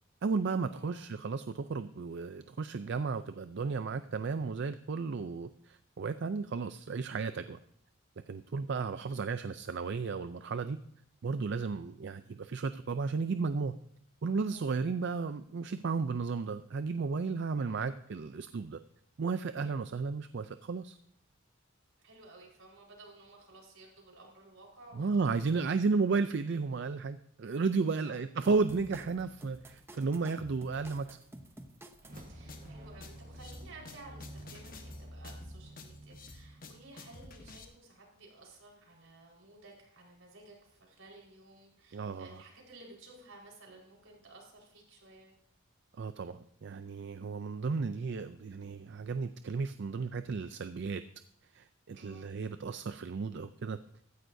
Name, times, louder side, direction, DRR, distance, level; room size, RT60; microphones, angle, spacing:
voice 1, 0.2-7.6 8.3-10.8 11.2-13.7 14.2-18.8 19.2-21.0 24.9-31.2 41.9-42.3 45.9-51.0 51.5-53.8, right 4 dB, 55° right, 11 dB, 0.4 m, -33 dB
voice 2, 0.7-1.1 14.5-14.6 14.9-15.0 17.5-17.8 22.0-25.1 25.4-25.7 27.8-28.1 32.0-45.3 51.9-52.2, right 2 dB, 75° right, -1 dB, 4.6 m, -55 dB
sound 1, 28.4-32.3, right 1 dB, 10° right, 0.7 m, -51 dB
sound 2, 32.0-37.4, right 1 dB, 40° right, 1.4 m, -50 dB
sound 3, 32.1-37.6, left 3 dB, 40° left, 1.3 m, -51 dB
15.0 x 13.5 x 2.7 m, 0.69 s
head